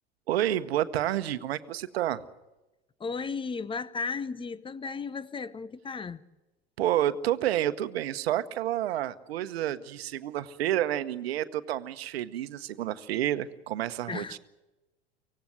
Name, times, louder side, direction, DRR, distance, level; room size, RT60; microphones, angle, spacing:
voice 1, 0.3-2.2 6.8-14.4, right 12 dB, 70° right, 1.1 m, -29 dB
voice 2, 3.0-6.2 14.1-14.4, left 5 dB, 15° left, 0.9 m, -35 dB
24.5 x 17.5 x 7.9 m
hypercardioid pair, 85°, 32 cm